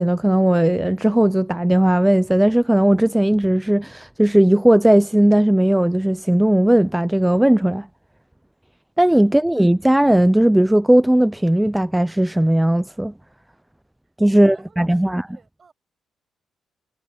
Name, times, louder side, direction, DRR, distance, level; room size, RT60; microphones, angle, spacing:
voice 1, 0.0-7.9 9.0-13.1 14.2-15.3, right 1 dB, 5° right, 0.4 m, -17 dB
voice 2, 14.3-15.7, right 5 dB, 40° right, 7.3 m, -54 dB
cardioid pair, 90°, 0 cm